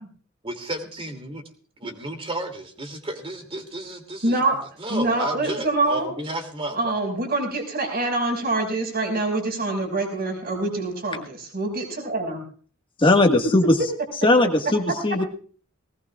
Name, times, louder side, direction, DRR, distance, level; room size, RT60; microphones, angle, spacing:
voice 1, 0.4-1.4 1.8-6.9, right 1 dB, 25° right, 6 dB, 2.6 m, -33 dB
voice 2, 4.2-4.5 4.9-6.1 6.7-12.4, right 2 dB, 50° right, 2 dB, 5.2 m, -25 dB
voice 3, 13.0-13.8 14.2-15.2, left 2 dB, 25° left, 4 dB, 1.6 m, -18 dB
19.5 x 19.0 x 2.4 m, 0.43 s
head